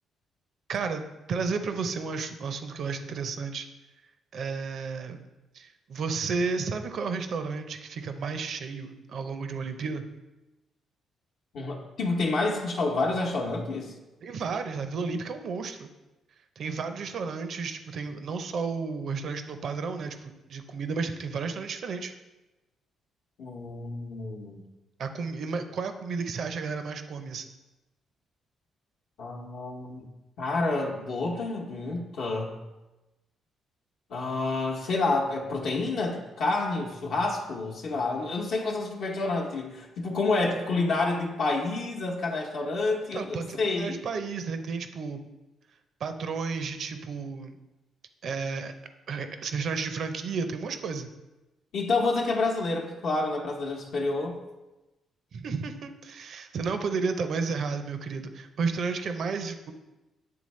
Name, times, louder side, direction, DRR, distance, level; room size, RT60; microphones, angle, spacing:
voice 1, 0.7-3.7 4.3-5.2 5.5-10.0 14.2-15.9 16.6-22.1 25.0-27.4 43.1-45.2 46.0-47.6 48.2-48.7 49.1-51.1 55.3-59.7, right 4 dB, 60° right, 8 dB, 0.5 m, -32 dB
voice 2, 11.5-13.9 23.4-24.6 29.2-30.0 30.4-32.6 34.1-44.0 51.7-54.4, left 3 dB, 75° left, -1 dB, 0.8 m, -29 dB
8.6 x 3.5 x 3.1 m, 1.0 s
cardioid pair, 90°, 0 cm